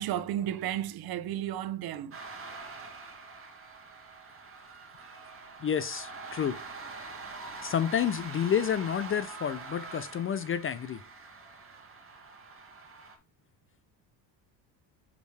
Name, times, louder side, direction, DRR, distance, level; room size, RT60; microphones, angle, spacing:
voice 1, 0.0-2.2, right 11 dB, 55° right, 0.7 m, -33 dB
sound 1, 2.1-13.2, right 3 dB, 30° right, 2.1 m, -44 dB
voice 2, 5.6-6.6 7.6-11.0, left 8 dB, 30° left, 0.4 m, -29 dB
6.7 x 5.4 x 3.2 m
cardioid pair, 125°, 45 cm